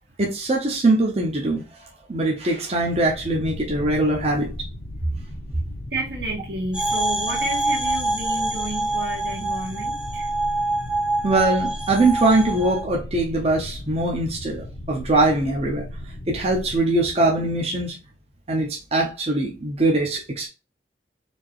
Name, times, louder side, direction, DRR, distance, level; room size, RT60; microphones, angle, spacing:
voice 1, 0.2-1.6 2.1-4.5 11.2-15.8 16.3-18.0 18.5-20.5, right 2 dB, 35° right, 0.8 m, -22 dB
sound 1, 2.8-16.8, left 1 dB, 55° left, 0.7 m, -37 dB
voice 2, 5.9-10.3, right 1 dB, 75° right, 1.8 m, -31 dB
sound 2, 6.7-12.8, right 2 dB, 5° right, 0.8 m, -25 dB
4.3 x 2.8 x 3.1 m
head